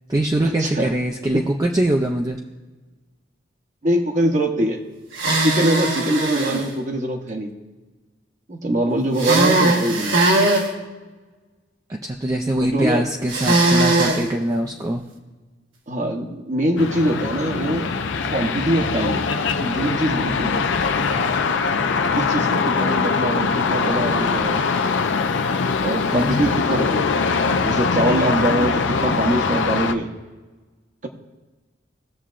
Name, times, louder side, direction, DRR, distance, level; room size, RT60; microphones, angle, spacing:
voice 1, 0.1-2.4 11.9-15.0 26.1-26.6, right 1 dB, 20° right, 1 dB, 0.4 m, -23 dB
voice 2, 3.8-4.8 5.4-7.5 8.5-10.5 12.7-13.0 15.9-17.9 18.3-19.3 19.6-20.9 22.2-24.6 25.8-27.1 27.4-30.1, right 1 dB, 40° right, 3 dB, 0.9 m, -23 dB
sound 1, 5.1-6.6 9.2-10.7 13.3-14.2, right 2 dB, 90° right, 1.2 m, -19 dB
sound 2, 16.8-29.9, left 5 dB, 75° left, 0.5 m, -22 dB
18.0 x 6.9 x 2.5 m, 1.3 s
head